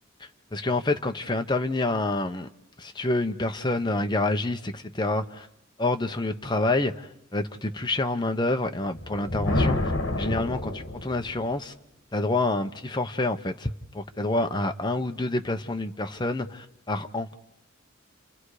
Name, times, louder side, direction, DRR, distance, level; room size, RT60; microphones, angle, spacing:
voice 1, 0.5-2.5 2.8-5.5 5.8-11.7 12.1-17.3, left 2 dB, 20° left, 1.0 m, -28 dB
Thunder, 8.8-11.5, left 1 dB, 65° left, 2.2 m, -28 dB
29.5 x 28.0 x 5.0 m
head